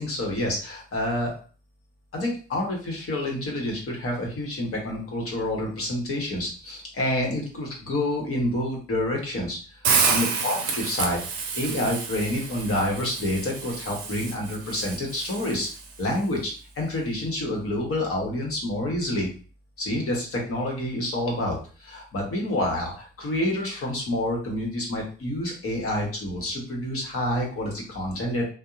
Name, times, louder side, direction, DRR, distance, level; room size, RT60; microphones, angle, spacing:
voice 1, 0.0-1.3 2.1-9.6 9.9-11.2 11.5-15.7 16.0-19.3 19.8-28.5, left 1 dB, 45° left, -1 dB, 1.2 m, -28 dB
Hiss, 9.8-15.9, right 5 dB, 85° right, 0.5 m, -29 dB
2.7 x 2.2 x 2.5 m, 0.39 s
hypercardioid pair, 50°, 31 cm